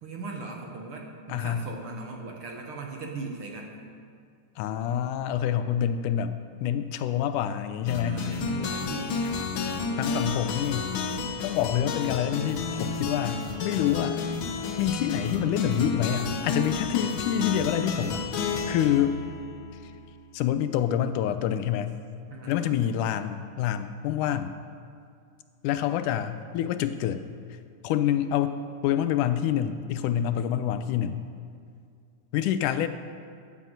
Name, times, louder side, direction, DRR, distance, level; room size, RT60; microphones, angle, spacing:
voice 1, 0.0-3.8 8.1-9.2 16.5-16.8 22.3-22.8, right 3 dB, 55° right, 1 dB, 1.8 m, -39 dB
voice 2, 1.3-1.7 4.6-8.3 10.0-10.9 11.4-14.2 14.8-18.3 18.7-19.3 20.3-22.0 22.5-24.6 25.6-27.3 27.8-31.3 32.3-32.9, left 10 dB, 85° left, 11 dB, 2.2 m, -27 dB
sound 1, 7.9-20.1, left 4 dB, 65° left, 1.2 m, -31 dB
11.0 x 9.3 x 7.7 m, 2.3 s
omnidirectional pair, 3.5 m